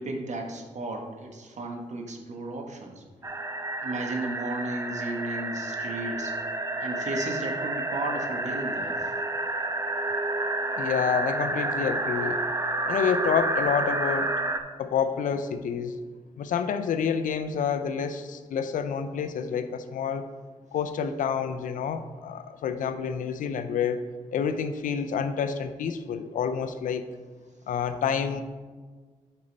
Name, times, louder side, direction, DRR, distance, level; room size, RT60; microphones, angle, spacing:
voice 1, 0.0-3.0 3.8-6.4 6.8-9.1, right 2 dB, 60° right, 2 dB, 1.4 m, -34 dB
sound 1, 3.2-14.6, right 2 dB, 25° right, 0.7 m, -30 dB
voice 2, 10.8-12.4 12.9-14.3 14.8-16.0 16.4-20.2 20.7-24.0 24.3-27.0 27.7-28.4, left 7 dB, 80° left, 10 dB, 0.5 m, -28 dB
8.5 x 5.4 x 4.0 m, 1.4 s
cardioid pair, 60°, 13 cm